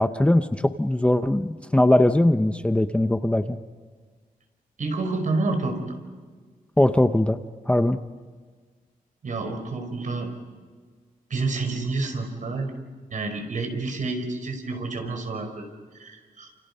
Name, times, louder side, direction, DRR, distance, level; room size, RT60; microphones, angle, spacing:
voice 1, 0.0-3.6 6.8-7.4 7.7-8.0, left 1 dB, 10° left, 8 dB, 0.8 m, -20 dB
voice 2, 4.8-6.0 9.2-10.3 11.3-12.7 13.1-15.7 16.0-16.5, right 3 dB, 60° right, 5 dB, 5.2 m, -29 dB
30.0 x 28.5 x 5.6 m, 1.5 s
wide cardioid pair, 140°, 15 cm